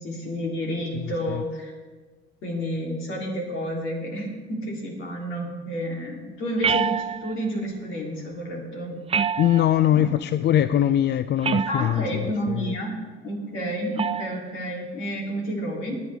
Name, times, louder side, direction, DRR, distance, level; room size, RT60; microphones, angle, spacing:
voice 1, 0.0-1.7 2.4-9.0 9.9-10.1 11.7-13.0 13.2-16.0, equal, 80° left, -1 dB, 3.2 m, -30 dB
voice 2, 0.9-1.4 9.4-12.8, left 11 dB, 60° left, 13 dB, 0.4 m, -22 dB
sound 1, 6.6-7.5 9.1-9.9 11.4-12.1 14.0-14.4, right 7 dB, 30° right, 0.4 m, -26 dB
21.0 x 8.3 x 3.5 m, 1.4 s
cardioid pair, 90°, 20 cm